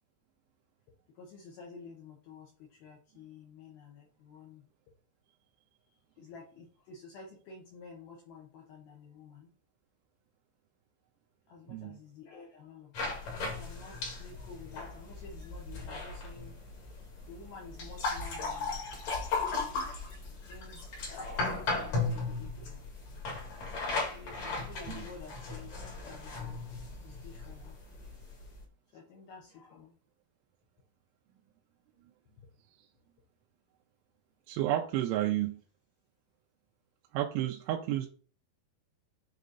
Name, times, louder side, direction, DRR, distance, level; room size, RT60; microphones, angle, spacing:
voice 1, 1.2-2.5 2.8-4.6 6.2-9.5 11.5-13.1 13.4-16.5 17.3-18.8 20.5-22.8 24.1-25.7 26.0-26.6 27.0-27.7 28.9-29.9, left 4 dB, 70° left, -2 dB, 2.4 m, -51 dB
voice 2, 11.7-12.0 24.9-25.1 34.5-35.6 37.1-38.1, right 13 dB, 85° right, 1 dB, 3.0 m, -31 dB
sound 1, 12.9-28.6, left 3 dB, 50° left, 2.3 m, -37 dB
9.0 x 3.1 x 4.0 m, 0.41 s
omnidirectional pair, 5.6 m